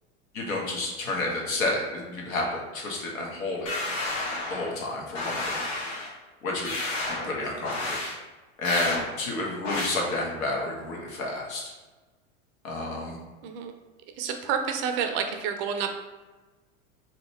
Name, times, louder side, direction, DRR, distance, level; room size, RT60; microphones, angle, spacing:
voice 1, 0.3-3.7 4.5-5.7 6.4-6.7 7.1-8.0 8.6-11.7 12.6-13.2, left 2 dB, 85° left, -1 dB, 1.0 m, -30 dB
sound 1, 3.7-4.8 5.2-6.1 6.7-7.3 7.7-8.1 8.7-9.0 9.7-9.9, left 2 dB, 55° left, 0.9 m, -31 dB
voice 2, 14.2-16.0, right 7 dB, 45° right, 5 dB, 0.4 m, -29 dB
2.8 x 2.2 x 4.0 m, 1.2 s
hypercardioid pair, 115°, 40 cm